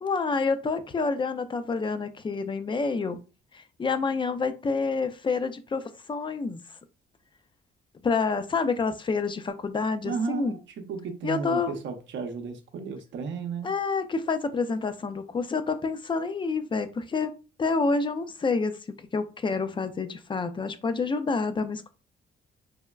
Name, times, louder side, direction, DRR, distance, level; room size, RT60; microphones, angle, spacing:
voice 1, 0.0-3.2 3.5-6.6 8.0-10.6 11.2-11.8 13.6-17.3 17.6-21.9, left 4 dB, 25° left, 0.4 m, -28 dB
voice 2, 10.0-13.7, right 5 dB, 70° right, 0.7 m, -34 dB
3.4 x 2.1 x 2.3 m
cardioid pair, 90°, 20 cm